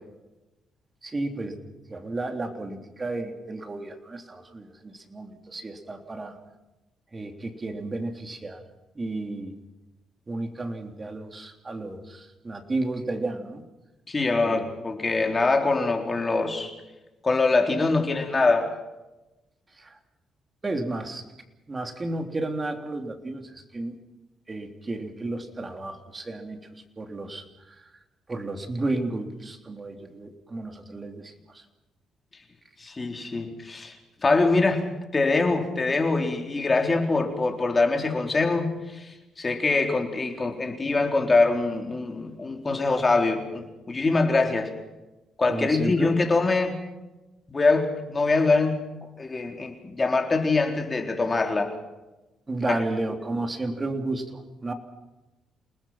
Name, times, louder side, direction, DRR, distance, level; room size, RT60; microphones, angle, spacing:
voice 1, 1.0-1.6 1.9-6.4 7.1-8.6 8.9-9.6 10.3-13.6 14.4-14.6 19.8-20.0 20.6-21.2 21.7-24.0 24.5-27.9 28.3-31.6 45.5-46.1 52.5-54.7, right 2 dB, 25° right, 5 dB, 3.4 m, -32 dB
voice 2, 14.1-16.7 17.2-18.7 32.8-33.9 34.2-34.8 35.1-44.7 45.4-46.8 47.5-48.8 49.2-51.7 52.7-52.8, left 3 dB, 25° left, 4 dB, 4.1 m, -24 dB
29.0 x 19.5 x 5.9 m, 1.0 s
cardioid pair, 90°, 0 cm